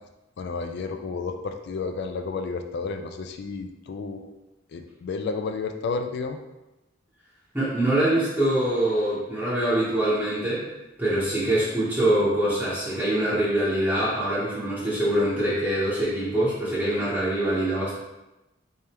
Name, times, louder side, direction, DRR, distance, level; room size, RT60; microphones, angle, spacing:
voice 1, 0.4-4.3 4.7-6.4, left 4 dB, 55° left, 6 dB, 0.3 m, -31 dB
voice 2, 7.5-10.7 11.0-17.9, right 1 dB, 10° right, -12 dB, 0.8 m, -24 dB
3.4 x 3.3 x 2.9 m, 0.99 s
head